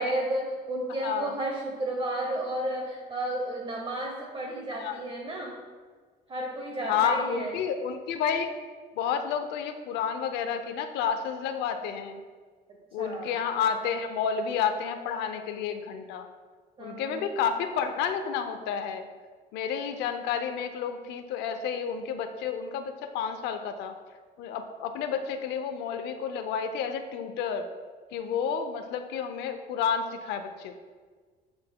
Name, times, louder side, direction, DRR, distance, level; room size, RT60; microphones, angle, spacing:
voice 1, 0.0-5.6 6.3-7.6 12.7-13.3 16.8-17.3, right 1 dB, 30° right, 0 dB, 0.8 m, -32 dB
voice 2, 1.0-1.3 4.8-5.0 6.9-8.5 9.0-12.2 12.9-16.3 16.8-19.1 19.5-23.9 24.4-27.7 28.1-30.8, left 7 dB, 90° left, 7 dB, 0.6 m, -30 dB
8.7 x 5.6 x 2.2 m, 1.5 s
cardioid pair, 110°, 17 cm